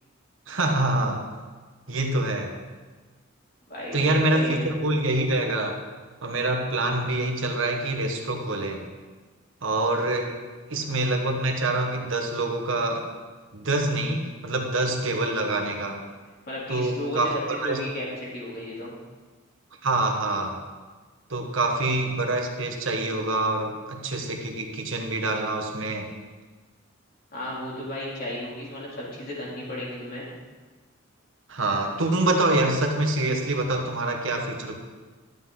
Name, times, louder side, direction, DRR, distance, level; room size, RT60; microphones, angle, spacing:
voice 1, 0.5-1.3 1.9-2.5 3.9-5.8 6.2-8.9 9.6-10.4 10.7-13.1 13.5-16.0 16.7-17.8 19.8-20.6 21.3-26.1 31.5-34.8, right 2 dB, 70° right, 2 dB, 1.4 m, -26 dB
voice 2, 3.7-4.7 16.5-17.2 17.6-18.9 27.3-30.3, left 1 dB, 45° left, -6 dB, 3.2 m, -34 dB
12.5 x 7.9 x 3.8 m, 1.4 s
head